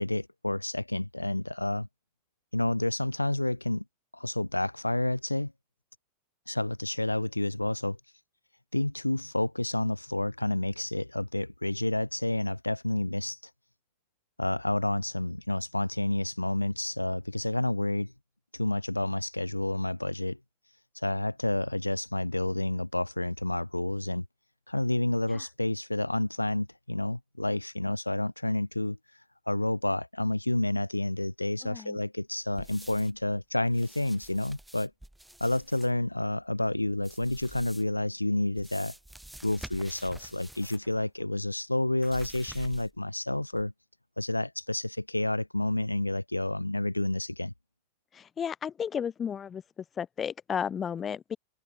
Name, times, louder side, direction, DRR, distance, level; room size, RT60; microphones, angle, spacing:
voice 1, 0.0-1.9 2.5-3.8 4.1-5.5 6.5-8.0 8.7-13.4 14.4-18.1 18.5-20.4 20.9-24.2 24.7-29.0 29.5-34.9 35.4-38.9 39.4-43.7 44.2-47.5, left 1 dB, 85° left, 0.6 m, -29 dB
voice 2, 31.6-32.0 48.1-49.6 50.0-51.4, left 7 dB, 20° left, 1.1 m, -33 dB
sound 1, 32.6-33.2 33.7-35.9 37.0-38.0 38.5-40.9 41.2-41.3 42.0-43.1 43.5-43.6, right 1 dB, 5° right, 0.7 m, -48 dB
figure-of-eight pair, 90°, 0 cm